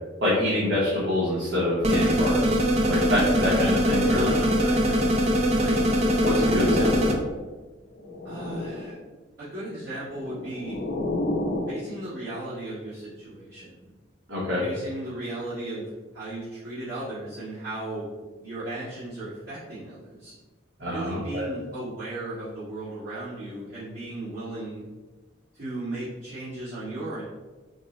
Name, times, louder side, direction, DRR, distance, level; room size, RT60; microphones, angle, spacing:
voice 1, 0.2-2.6 2.9-4.3 6.2-7.1 14.3-14.6 20.8-21.5, left 1 dB, 75° right, -7 dB, 0.9 m, -26 dB
sound 1, 1.8-7.1, equal, 35° right, 0.4 m, -22 dB
voice 2, 4.0-5.8 8.2-8.9 9.4-10.8 11.7-13.9 14.6-20.3 20.8-24.8 25.5-27.2, right 2 dB, 55° right, -15 dB, 1.4 m, -36 dB
sound 2, 5.7-7.5 7.9-9.0 9.9-11.8, left 2 dB, 50° left, 0.5 m, -31 dB
3.7 x 2.0 x 3.8 m, 1.2 s
head